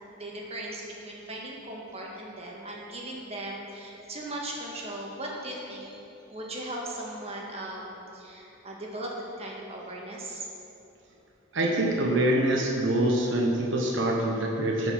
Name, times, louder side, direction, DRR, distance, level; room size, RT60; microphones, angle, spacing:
voice 1, 0.1-10.5, right 1 dB, 30° right, -2 dB, 1.7 m, -38 dB
voice 2, 11.5-14.9, right 1 dB, 65° right, -1 dB, 1.1 m, -25 dB
16.0 x 5.3 x 5.8 m, 2.9 s
head